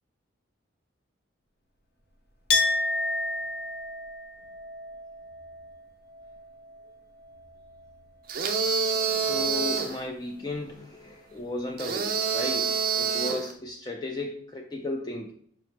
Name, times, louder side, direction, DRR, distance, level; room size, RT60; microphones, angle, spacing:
Chink clink, 2.5-8.0 8.3-9.2, left 2 dB, 55° left, 0.7 m, -32 dB
sound 1, 8.3-10.0 11.8-13.5, right 5 dB, 50° right, 0.5 m, -27 dB
voice 1, 8.9-15.3, left 1 dB, 20° left, 0 dB, 0.4 m, -35 dB
4.9 x 2.0 x 4.4 m, 0.63 s
head